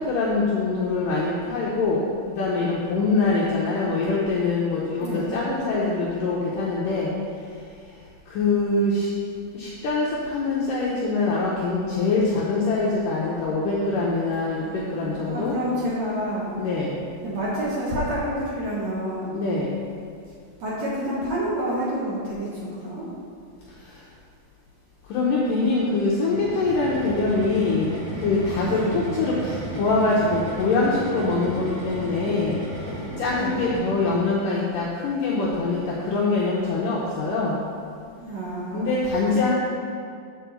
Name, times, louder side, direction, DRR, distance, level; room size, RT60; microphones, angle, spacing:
voice 1, 0.0-2.0 2.3-7.1 8.3-9.1 9.5-15.5 16.6-17.0 19.3-19.7 25.1-32.5 33.2-37.6 38.7-39.5, left 3 dB, 80° left, -5 dB, 1.9 m, -24 dB
voice 2, 5.0-5.3 14.5-16.5 17.2-19.4 20.6-23.1 28.6-28.9 33.3-33.6 38.2-39.5, right 1 dB, 70° right, -7 dB, 1.6 m, -29 dB
sound 1, 26.3-34.3, right 1 dB, 55° right, 2.8 m, -34 dB
7.4 x 4.7 x 6.9 m, 2.2 s
omnidirectional pair, 4.9 m